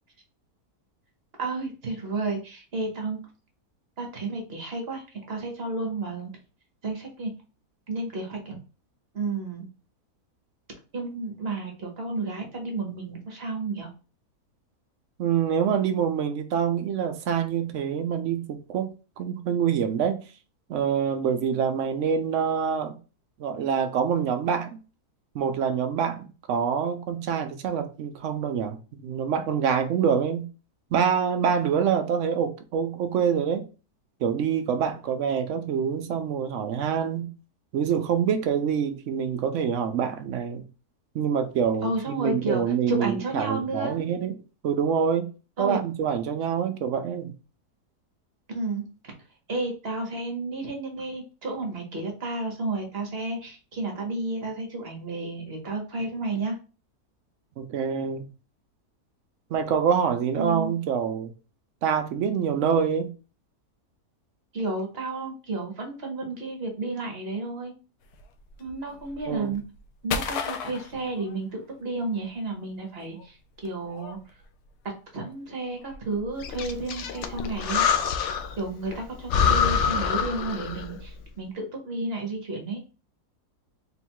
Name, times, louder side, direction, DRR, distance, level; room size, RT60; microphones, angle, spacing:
voice 1, 1.4-3.2 4.0-6.3 6.8-7.3 7.9-8.6 9.1-9.7 10.9-13.9 41.8-44.0 45.6-45.8 48.5-48.9 49.5-56.6 60.3-60.7 64.5-67.7 68.6-69.6 70.0-73.4 73.6-74.2 75.1-77.9 78.6-82.8, right 3 dB, 45° right, 1.1 m, -32 dB
voice 2, 15.2-20.2 20.7-23.0 23.4-24.8 25.3-30.5 30.9-33.7 34.2-37.3 37.7-40.6 41.1-44.3 44.6-45.3 45.6-47.3 57.6-58.2 59.5-61.3 61.8-63.1 69.3-69.5, right 7 dB, 65° right, 0.8 m, -26 dB
sound 1, 68.0-71.9 72.2-77.9, left 6 dB, 85° left, 1.2 m, -37 dB
Breathing, 76.4-78.6 78.9-79.0 79.3-81.0, left 7 dB, 70° left, 0.7 m, -25 dB
3.8 x 2.3 x 4.3 m
omnidirectional pair, 1.7 m